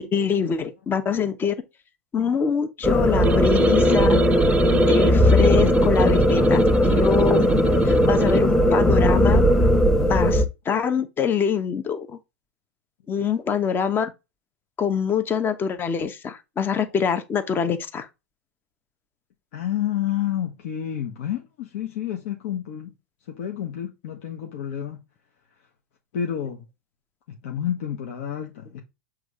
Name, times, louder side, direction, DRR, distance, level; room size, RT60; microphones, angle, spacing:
voice 1, 0.1-1.5 2.1-4.2 4.9-9.4 10.0-12.2 13.1-14.1 14.8-18.1, left 7 dB, 25° left, 1.0 m, -24 dB
sound 1, 2.8-10.5, equal, 5° left, 1.2 m, -18 dB
sound 2, 3.2-8.5, right 4 dB, 20° right, 0.7 m, -27 dB
voice 2, 19.5-22.9 23.3-25.0 26.1-26.7 27.4-28.8, left 10 dB, 60° left, 1.3 m, -29 dB
7.7 x 3.3 x 3.7 m
hypercardioid pair, 95°, 8 cm